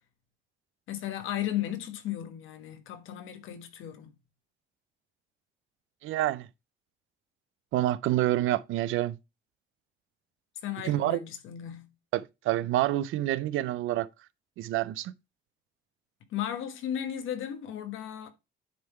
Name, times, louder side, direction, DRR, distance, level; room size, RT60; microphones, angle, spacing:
voice 1, 0.9-4.1 10.6-11.9 16.3-18.3, left 11 dB, 90° left, 1.3 m, -35 dB
voice 2, 6.0-6.5 7.7-9.2 10.8-11.2 12.1-14.1 14.6-15.1, right 14 dB, 85° right, 0.5 m, -27 dB
9.4 x 3.6 x 4.5 m
cardioid pair, 90°, 20 cm